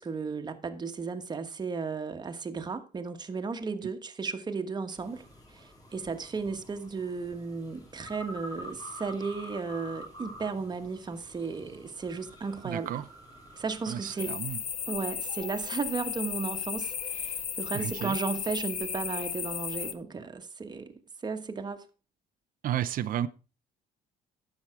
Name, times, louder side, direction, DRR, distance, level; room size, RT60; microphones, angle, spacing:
voice 1, 0.0-5.2 5.5-12.9 13.6-14.4 14.9-21.8, right 4 dB, 25° right, 1.3 m, -35 dB
sound 1, 5.0-14.2, equal, 20° left, 3.5 m, -47 dB
voice 2, 12.6-13.1 13.9-14.6 17.7-18.2 22.6-23.3, right 11 dB, 55° right, 0.6 m, -32 dB
sound 2, 14.2-19.9, left 7 dB, 45° left, 0.9 m, -35 dB
10.5 x 7.2 x 4.8 m
cardioid pair, 110°, 17 cm